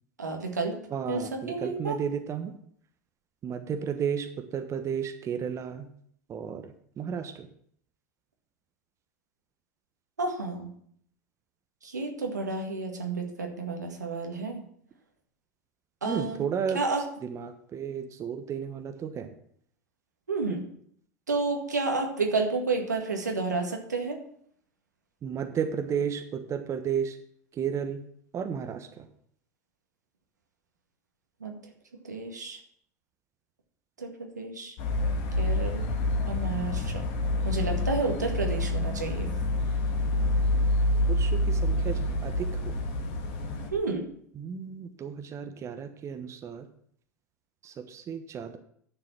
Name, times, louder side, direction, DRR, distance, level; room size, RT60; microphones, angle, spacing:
voice 1, 0.2-0.8 1.1-2.0 10.2-10.7 11.8-14.6 16.0-16.4 16.7-17.0 20.3-20.6 21.3-24.2 31.4-31.6 32.1-32.6 34.0-34.7 35.4-35.9 36.3-37.0 37.4-39.3 43.7-44.1, right 3 dB, 85° right, 2 dB, 1.9 m, -30 dB
voice 2, 0.9-2.5 3.4-5.9 6.3-7.5 16.0-16.8 17.2-19.3 25.2-27.2 27.5-28.0 28.3-29.1 41.1-42.8 44.3-46.7 47.6-48.6, right 7 dB, 35° right, 7 dB, 1.2 m, -33 dB
sound 1, 34.8-43.7, left 1 dB, 55° left, 2.1 m, -27 dB
10.5 x 6.8 x 5.9 m, 0.64 s
figure-of-eight pair, 80°, 9 cm